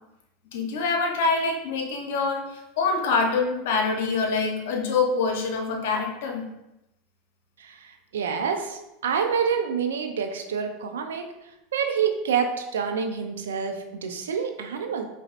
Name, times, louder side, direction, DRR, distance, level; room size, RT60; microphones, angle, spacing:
voice 1, 0.5-6.5, left 4 dB, 75° left, 3 dB, 0.8 m, -25 dB
voice 2, 7.6-11.3 11.7-15.1, right 6 dB, 85° right, 5 dB, 0.5 m, -27 dB
5.2 x 2.7 x 2.5 m, 0.90 s
hypercardioid pair, 95°, 0 cm